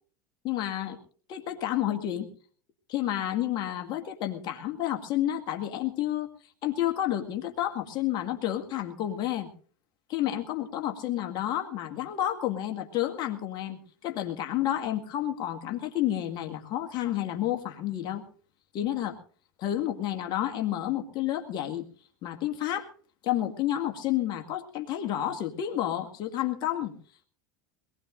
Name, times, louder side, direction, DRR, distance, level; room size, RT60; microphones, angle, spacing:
voice 1, 0.4-1.0 1.3-2.3 2.9-6.3 6.6-9.5 10.1-18.2 18.7-19.2 19.6-21.8 22.2-22.9 23.2-26.9, left 12 dB, 50° left, 4 dB, 2.0 m, -30 dB
22.0 x 19.5 x 2.6 m, 0.43 s
hypercardioid pair, 100°, 9 cm